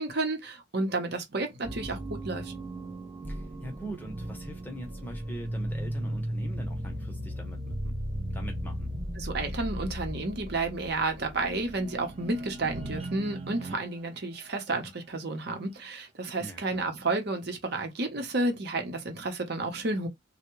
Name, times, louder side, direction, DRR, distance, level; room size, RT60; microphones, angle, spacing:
voice 1, 0.0-2.5 9.2-20.1, right 2 dB, 55° right, 0.9 m, -31 dB
sound 1, 1.6-13.9, equal, 30° right, 0.6 m, -36 dB
voice 2, 3.3-7.9 8.3-8.9 16.4-16.8, right 1 dB, 10° left, 0.8 m, -42 dB
3.4 x 2.2 x 3.0 m
head